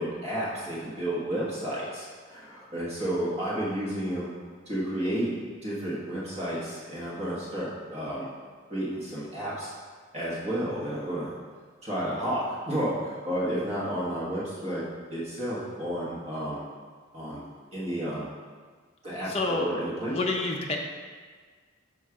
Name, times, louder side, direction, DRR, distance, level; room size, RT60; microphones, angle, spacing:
voice 1, 0.0-4.3 4.7-5.3 5.6-8.3 8.7-9.7 10.1-11.3 11.8-14.8 15.1-16.6 17.1-17.4 17.7-18.3 19.0-20.4, equal, 30° right, -8 dB, 1.2 m, -31 dB
voice 2, 19.3-19.7 20.1-20.8, left 3 dB, 30° left, 0 dB, 0.5 m, -28 dB
6.2 x 3.2 x 4.7 m, 1.5 s
head